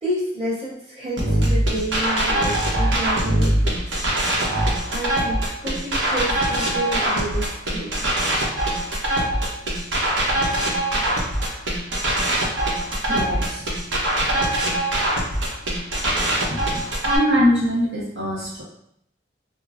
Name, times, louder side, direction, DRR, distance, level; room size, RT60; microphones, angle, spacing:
voice 1, 0.0-4.0 4.9-8.0, right 1 dB, 30° right, -10 dB, 1.5 m, -30 dB
sound 1, 1.2-17.2, right 1 dB, 85° right, 0.9 m, -22 dB
voice 2, 13.1-13.7 16.4-18.6, equal, 70° right, -7 dB, 1.4 m, -23 dB
4.9 x 2.1 x 2.5 m, 0.74 s
head